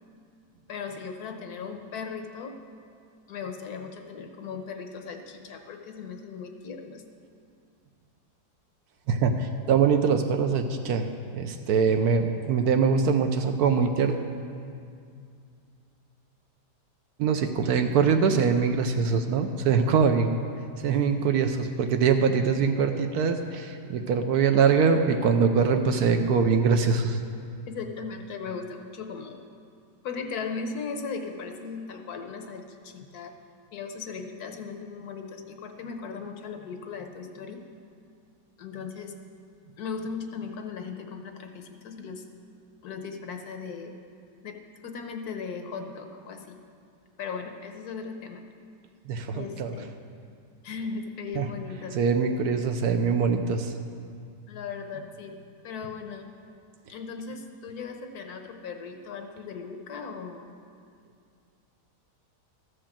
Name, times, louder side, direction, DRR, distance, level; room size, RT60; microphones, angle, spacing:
voice 1, 0.7-2.6 3.3-7.0 27.7-29.4 30.0-33.4 33.7-37.6 38.6-39.2 39.8-42.2 42.8-44.0 44.4-46.6 47.2-48.4 49.3-49.9 50.6-52.0 54.5-55.4 55.6-56.3 56.9-60.5, left 5 dB, 65° left, 5 dB, 1.3 m, -37 dB
voice 2, 9.1-14.2 17.2-20.3 20.8-27.2 49.1-49.7 51.4-51.5 51.9-53.7, right 5 dB, 70° right, 6 dB, 1.0 m, -23 dB
13.5 x 5.1 x 7.2 m, 2.4 s
omnidirectional pair, 1.8 m